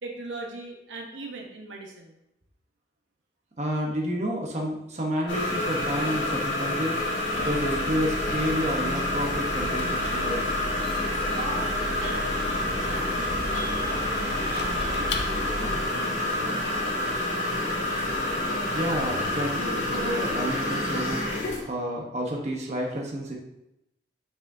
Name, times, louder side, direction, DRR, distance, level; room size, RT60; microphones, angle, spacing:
voice 1, 0.0-2.2 11.3-17.0, right 2 dB, 80° right, 1 dB, 1.1 m, -41 dB
voice 2, 3.6-7.0 7.3-10.5 18.6-21.3 21.6-23.4, equal, 35° right, -1 dB, 0.9 m, -30 dB
sound 1, 5.3-21.6, left 1 dB, 90° left, 2.0 m, -28 dB
Bus, 7.3-15.8, equal, 65° right, 1.7 m, -37 dB
Squeak / Wood, 8.6-15.8, left 4 dB, 65° left, 0.6 m, -41 dB
6.3 x 6.0 x 2.7 m, 0.86 s
head